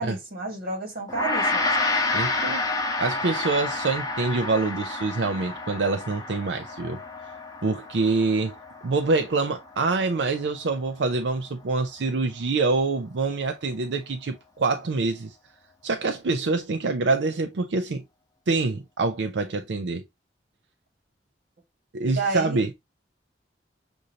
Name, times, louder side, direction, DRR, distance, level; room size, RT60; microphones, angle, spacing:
voice 1, 0.0-1.7 22.2-22.6, right 3 dB, 55° right, 1.8 m, -30 dB
Gong, 1.1-10.5, left 2 dB, 20° left, 0.8 m, -29 dB
voice 2, 2.1-2.6 3.0-7.0 7.6-8.5 8.8-15.4 15.8-18.0 18.5-20.0 21.9-22.7, right 3 dB, 80° right, 0.5 m, -25 dB
6.3 x 2.6 x 2.7 m
head